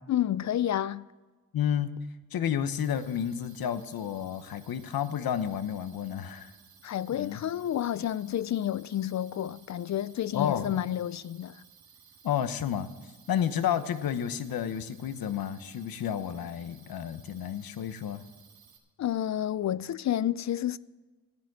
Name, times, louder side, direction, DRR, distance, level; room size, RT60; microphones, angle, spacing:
voice 1, 0.1-1.1 6.8-11.6 19.0-20.8, left 11 dB, 50° left, 0.5 m, -30 dB
voice 2, 1.5-1.9 2.3-6.5 7.1-7.4 10.3-10.7 12.2-12.9 13.3-18.2, left 9 dB, 75° left, 1.0 m, -31 dB
sound 1, 2.8-18.8, right 7 dB, 85° right, 2.1 m, -58 dB
14.5 x 9.5 x 6.2 m
cardioid pair, 90°, 35 cm